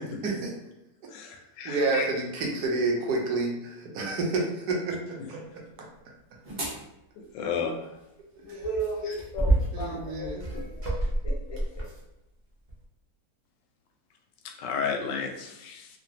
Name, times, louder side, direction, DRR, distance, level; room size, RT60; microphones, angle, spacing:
voice 1, 1.1-2.1 7.2-7.9 14.6-15.9, left 6 dB, 90° left, 3 dB, 1.2 m, -32 dB
voice 2, 1.6-5.6 8.4-8.6 9.7-10.5, right 3 dB, 70° right, -1 dB, 1.1 m, -29 dB
sound 1, 6.4-6.8 8.5-12.0 12.7-12.8, right 1 dB, 40° right, 0.6 m, -29 dB
voice 3, 8.5-11.9, right 1 dB, 65° left, -2 dB, 1.0 m, -36 dB
3.0 x 2.5 x 2.7 m, 0.88 s
omnidirectional pair, 1.8 m